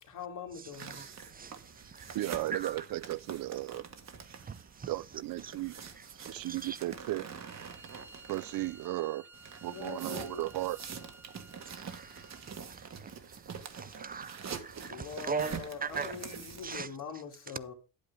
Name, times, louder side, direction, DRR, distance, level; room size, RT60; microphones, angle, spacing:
voice 1, 0.0-1.0 9.7-10.5 13.7-13.8 14.9-17.7, left 6 dB, 65° left, 2.5 m, -43 dB
voice 2, 0.5-2.9 4.2-5.6 5.9-6.9 11.6-16.2 16.6-17.5, right 5 dB, 25° right, 0.5 m, -42 dB
sound 1, 0.7-8.9 9.3-16.8, right 6 dB, 50° right, 1.5 m, -45 dB
voice 3, 2.1-3.8 4.9-5.8 6.2-7.3 8.3-9.3 9.6-10.8, right 16 dB, 75° right, 0.5 m, -35 dB
Bowed string instrument, 7.3-12.6, right 3 dB, 5° right, 1.9 m, -55 dB
9.5 x 8.8 x 3.6 m
cardioid pair, 95°, 35 cm